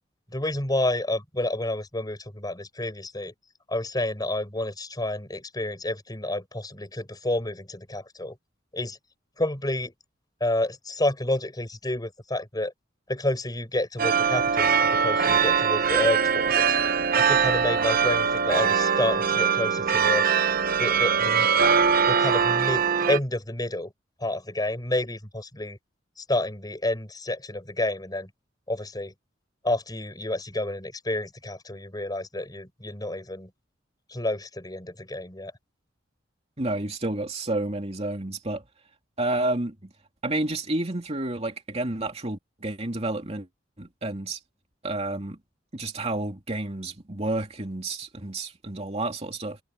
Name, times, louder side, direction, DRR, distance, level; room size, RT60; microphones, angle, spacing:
voice 1, 0.3-3.3 3.7-8.4 8.7-9.0 9.4-9.9 10.4-12.7 13.1-16.8 17.2-20.2 20.8-21.5 22.1-23.9 24.2-25.8 26.2-28.3 28.7-29.1 29.6-33.5 34.1-35.5, left 1 dB, 20° left, 6.1 m, -29 dB
sound 1, 14.0-23.2, right 6 dB, 55° right, 0.9 m, -22 dB
voice 2, 36.6-38.6 39.2-39.9 40.2-43.5 43.8-44.4 44.8-45.4 45.7-49.6, right 2 dB, 35° right, 2.7 m, -30 dB
head